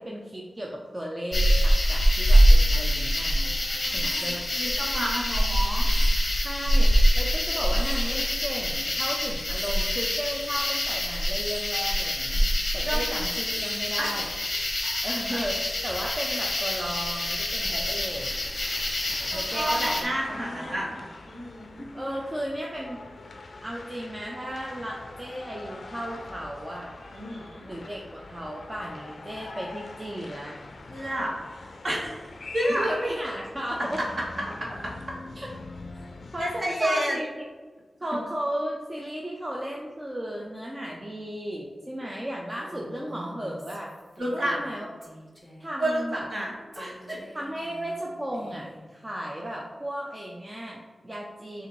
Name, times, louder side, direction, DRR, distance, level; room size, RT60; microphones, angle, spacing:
voice 1, 0.0-3.6 3.9-4.4 6.4-12.4 12.7-14.3 15.0-18.3 19.3-20.0 20.3-21.0 21.9-23.0 23.6-26.9 27.6-30.6 32.8-34.0 35.4-35.5 36.3-37.5 38.0-43.9 44.3-44.9 45.6-46.3 47.3-51.7, equal, 20° right, -2 dB, 0.5 m, -35 dB
sound 1, 1.3-20.0, equal, 40° left, 0.7 m, -24 dB
voice 2, 3.4-5.9 12.8-13.0 14.0-14.1 14.8-14.9 19.3-20.9 21.3-21.9 27.1-27.6 30.9-31.3 31.8-32.3 32.5-32.9 36.4-37.2 44.2-44.6 45.8-46.0 46.3-47.2, right 1 dB, 40° right, -4 dB, 1.2 m, -30 dB
sound 2, 17.6-36.6, left 3 dB, 60° left, 0.4 m, -43 dB
Female speech woman speaking, 42.5-44.8 45.0-45.8 46.7-48.9, equal, ahead, 1.1 m, -47 dB
6.5 x 2.5 x 3.0 m, 1.4 s
wide cardioid pair, 110°, 0 cm